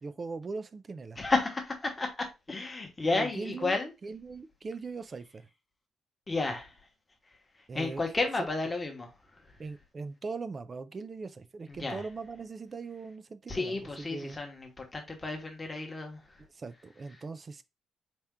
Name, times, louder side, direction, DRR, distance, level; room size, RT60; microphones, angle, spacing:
voice 1, 0.0-1.2 3.1-5.5 7.7-8.1 9.6-14.4 16.5-17.6, right 4 dB, 25° right, 0.3 m, -40 dB
voice 2, 1.2-3.9 6.3-6.8 7.5-9.6 11.7-12.1 13.5-16.4, left 3 dB, 15° left, 1.0 m, -32 dB
4.2 x 2.3 x 3.6 m
cardioid pair, 165°, 0 cm